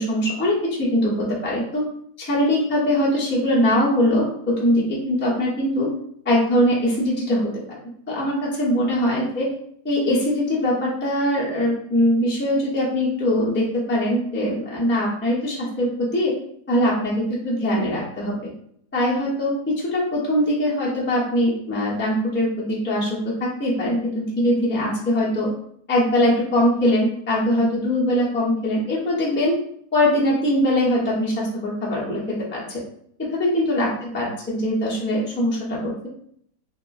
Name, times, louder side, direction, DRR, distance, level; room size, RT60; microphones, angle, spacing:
voice 1, 0.0-1.8 2.2-5.9 6.2-7.4 7.7-7.8 8.1-9.5 9.8-16.3 16.7-18.5 18.9-25.5 25.9-29.5 29.9-32.8 33.4-33.9 34.1-36.1, left 1 dB, 15° left, -6 dB, 0.3 m, -22 dB
2.7 x 2.4 x 2.4 m, 0.67 s
omnidirectional pair, 1.7 m